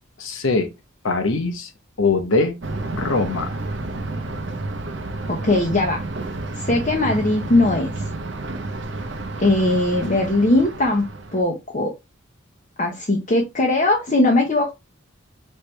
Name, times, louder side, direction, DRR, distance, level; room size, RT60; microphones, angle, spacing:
voice 1, 0.2-0.7 1.0-1.7 2.0-2.6 2.9-3.5, left 3 dB, 80° left, 0.9 m, -21 dB
Thunder, 2.6-11.4, right 2 dB, 60° right, 0.6 m, -30 dB
voice 2, 5.3-6.0 6.5-8.1 9.4-11.9 12.8-14.7, left 2 dB, 40° left, 0.8 m, -20 dB
4.5 x 3.2 x 3.2 m
head